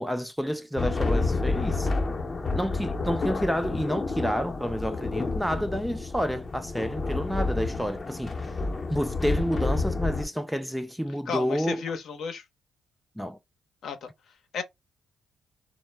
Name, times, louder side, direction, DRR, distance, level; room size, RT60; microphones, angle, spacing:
voice 1, 0.0-1.9 2.5-8.4 8.9-11.8 13.2-13.4, equal, ahead, 0.3 m, -29 dB
sound 1, 0.8-10.3, left 3 dB, 30° left, 0.7 m, -29 dB
voice 2, 11.3-12.4 13.8-14.1 14.5-14.6, left 6 dB, 65° left, 0.7 m, -33 dB
2.0 x 2.0 x 3.1 m
cardioid pair, 90°, 0 cm